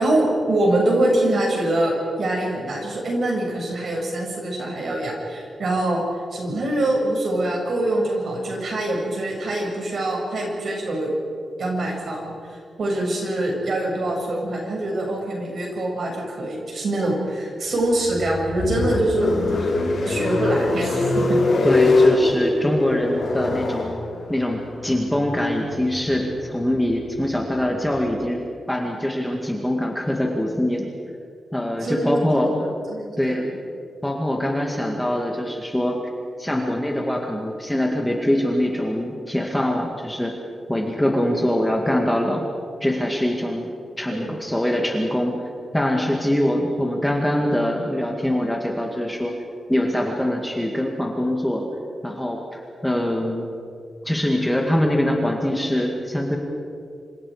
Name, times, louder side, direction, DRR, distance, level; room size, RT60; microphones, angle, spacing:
voice 1, 0.0-6.0 6.3-11.1 11.6-12.3 12.8-19.7 20.0-21.4 31.8-33.6 44.1-44.3, right 1 dB, 50° right, -1 dB, 6.9 m, -24 dB
sound 1, 17.8-28.0, left 2 dB, 65° left, 5.8 m, -24 dB
voice 2, 21.6-23.9 24.3-30.9 31.5-32.5 33.2-33.5 34.0-36.0 36.4-40.3 40.7-42.5 42.8-45.4 45.7-49.3 49.7-51.6 52.0-53.5 54.0-56.4, left 1 dB, 5° left, 0 dB, 2.1 m, -23 dB
27.5 x 27.0 x 5.1 m, 2.3 s
wide cardioid pair, 175°, 0 cm